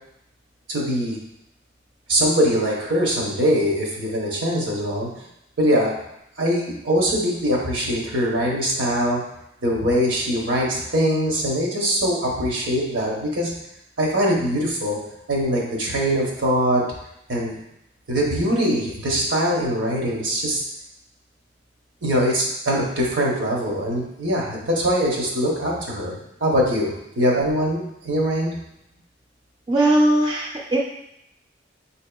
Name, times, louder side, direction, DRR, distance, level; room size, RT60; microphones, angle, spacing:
voice 1, 0.7-1.2 2.1-5.1 5.6-5.9 6.4-9.2 9.6-13.5 14.0-15.0 15.3-16.8 17.3-17.6 18.1-20.6 22.0-28.6, equal, 80° right, -2 dB, 0.8 m, -22 dB
voice 2, 29.7-30.8, right 1 dB, 25° right, -3 dB, 0.3 m, -19 dB
5.0 x 2.7 x 2.2 m, 0.81 s
head